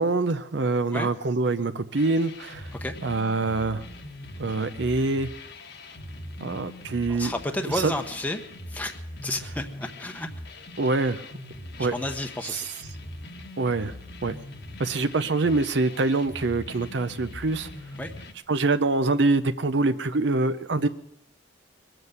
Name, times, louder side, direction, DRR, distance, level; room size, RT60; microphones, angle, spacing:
voice 1, 0.0-2.7 3.0-3.8 4.4-5.3 6.4-7.3 7.7-7.9 10.8-11.3 11.8-11.9 12.5-12.6 13.6-14.0 14.2-14.4 14.8-17.7 18.5-20.9, right 3 dB, 65° right, 10 dB, 0.6 m, -25 dB
sound 1, 2.0-18.3, left 1 dB, 60° left, 1.4 m, -41 dB
voice 2, 7.1-8.4 8.7-8.9 9.2-10.3 11.8-12.7 18.0-18.1, left 1 dB, 10° left, 5 dB, 0.9 m, -31 dB
22.0 x 7.8 x 7.9 m, 0.71 s
head